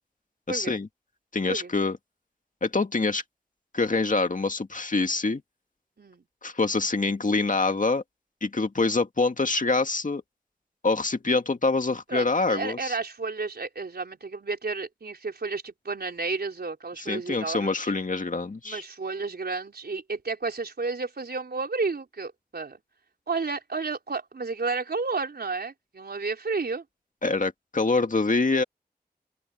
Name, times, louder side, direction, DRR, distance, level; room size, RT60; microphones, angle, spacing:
voice 1, 0.5-0.9 1.3-2.0 2.6-3.2 3.7-5.4 6.4-8.0 8.4-10.2 10.8-12.9 17.0-18.8 27.2-28.6, left 3 dB, 50° left, 2.1 m, -25 dB
voice 2, 12.1-17.9 18.6-22.8 23.3-26.8, right 4 dB, 70° right, 4.3 m, -32 dB
open air
cardioid pair, 40°, 17 cm